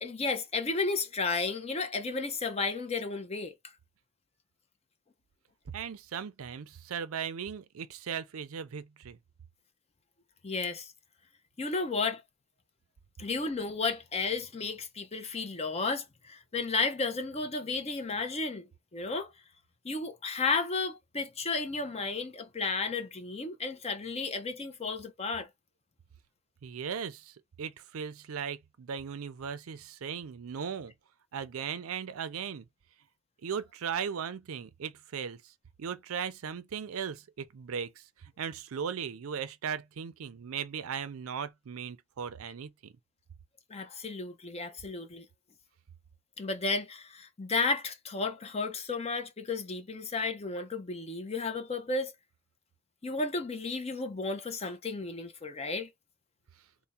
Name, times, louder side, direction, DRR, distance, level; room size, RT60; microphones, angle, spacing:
voice 1, 0.0-3.5 10.4-10.9 11.6-12.2 13.2-19.3 19.8-25.5 43.7-45.2 46.4-52.1 53.0-55.9, left 4 dB, 30° left, 0.6 m, -33 dB
voice 2, 5.7-9.2 26.6-30.9 31.3-32.6 33.4-35.5 35.8-42.9, right 7 dB, 80° right, 0.5 m, -37 dB
3.4 x 2.1 x 4.1 m
head